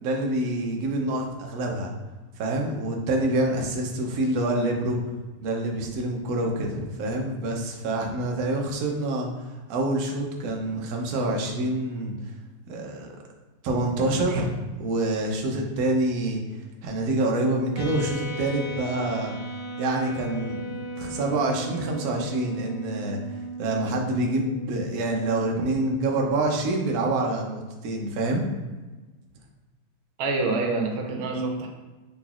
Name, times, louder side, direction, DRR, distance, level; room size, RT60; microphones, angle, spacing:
voice 1, 0.0-1.9 2.4-5.0 5.4-12.1 12.7-13.1 13.6-16.4 16.8-19.4 19.8-23.2 23.6-28.5, right 2 dB, 65° right, 1 dB, 1.0 m, -26 dB
sound 1, 17.8-26.3, right 1 dB, 85° left, 1.7 m, -37 dB
voice 2, 30.2-31.7, right 3 dB, 90° right, 2 dB, 1.5 m, -26 dB
5.7 x 3.9 x 2.4 m, 1.2 s
omnidirectional pair, 2.2 m